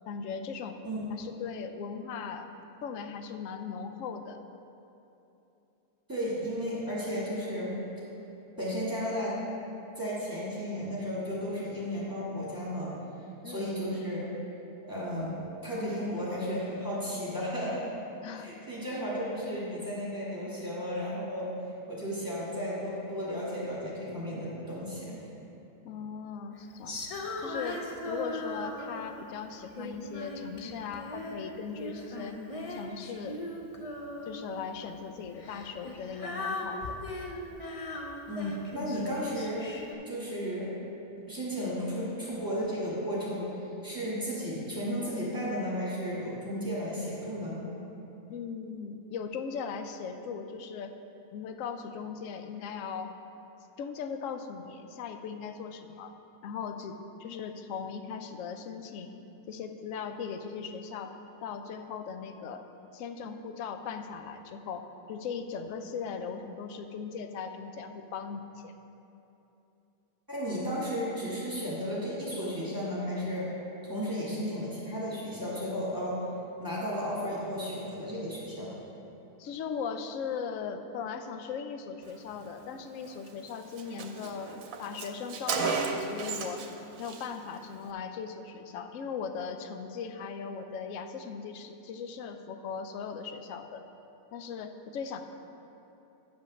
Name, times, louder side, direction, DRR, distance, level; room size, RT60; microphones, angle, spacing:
voice 1, 0.1-0.8 1.1-2.5 2.8-4.4 13.4-13.7 18.2-18.5 18.9-19.0 25.8-27.0 27.4-32.4 32.7-33.4 34.2-37.0 48.3-50.9 51.3-53.1 53.8-56.1 56.4-59.1 59.5-61.1 61.4-62.6 62.9-68.7 79.4-86.6 87.0-93.8 94.3-95.2, left 6 dB, 70° left, 7 dB, 0.9 m, -38 dB
voice 2, 6.1-7.8 8.6-9.4 10.0-12.9 13.4-14.3 14.8-17.8 18.3-21.5 21.9-25.2 38.3-39.7 40.1-40.7 41.3-43.6 43.8-47.6 70.3-73.5 73.8-76.2 76.6-78.7, equal, 15° right, -9 dB, 2.3 m, -34 dB
Female singing, 26.9-29.2 29.8-31.5 31.8-34.6 35.4-39.9, left 2 dB, 35° left, 0.5 m, -38 dB
Car, 83.1-83.2 83.5-83.6 83.8-86.7 87.0-87.3, right 5 dB, 70° right, 1.1 m, -33 dB
9.1 x 5.3 x 6.4 m, 2.9 s
omnidirectional pair, 1.6 m